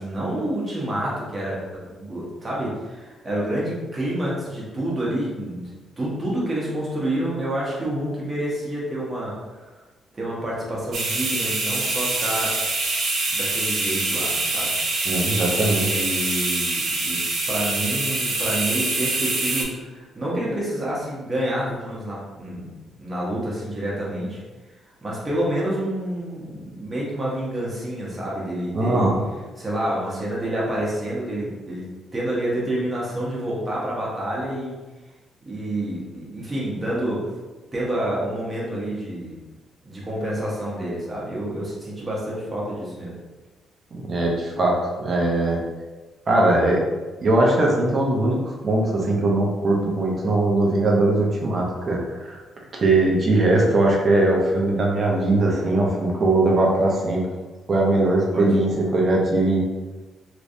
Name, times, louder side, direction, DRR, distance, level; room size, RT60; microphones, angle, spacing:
voice 1, 0.0-9.3 10.1-12.5 13.3-14.7 15.8-17.2 17.5-22.7 23.0-24.4 25.0-29.1 29.6-34.7 35.4-37.2 37.7-39.4 39.8-43.1 58.3-58.5, right 1 dB, 20° right, -6 dB, 1.2 m, -28 dB
sound 1, 10.9-19.6, right 2 dB, 65° right, 0.8 m, -25 dB
voice 2, 15.0-16.0 28.7-29.2 43.9-45.6 46.3-46.8 47.2-52.4 52.7-57.2 57.7-59.6, right 2 dB, 40° right, -2 dB, 0.8 m, -20 dB
3.2 x 3.1 x 2.7 m, 1.2 s
cardioid pair, 115°, 0 cm